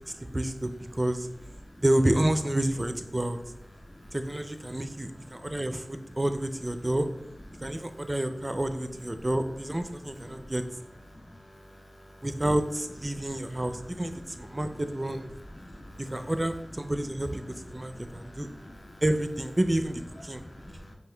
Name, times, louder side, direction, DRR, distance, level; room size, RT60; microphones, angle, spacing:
voice 1, 0.3-1.3 1.8-3.4 4.1-7.1 7.6-10.6 12.2-15.3 16.0-18.5 19.0-20.4, right 1 dB, 30° right, 8 dB, 0.4 m, -29 dB
voice 2, 15.6-16.0 17.9-18.5 18.8-19.0 20.4-20.9, left 1 dB, 35° left, 2 dB, 0.6 m, -47 dB
5.5 x 2.6 x 3.3 m, 0.81 s
wide cardioid pair, 55°, 0 cm